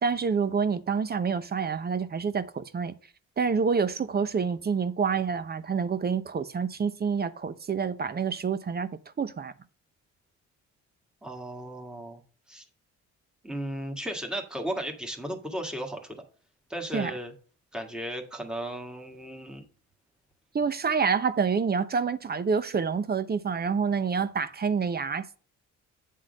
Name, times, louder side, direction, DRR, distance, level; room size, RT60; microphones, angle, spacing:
voice 1, 0.0-2.9 3.4-8.9 9.2-9.5 16.9-17.1 20.5-25.4, right 5 dB, 30° right, 0.7 m, -27 dB
voice 2, 11.2-12.2 12.5-12.6 13.4-16.2 16.7-17.3 17.7-19.6, equal, 5° right, 1.6 m, -35 dB
8.4 x 3.7 x 6.4 m
cardioid pair, 90°, 30 cm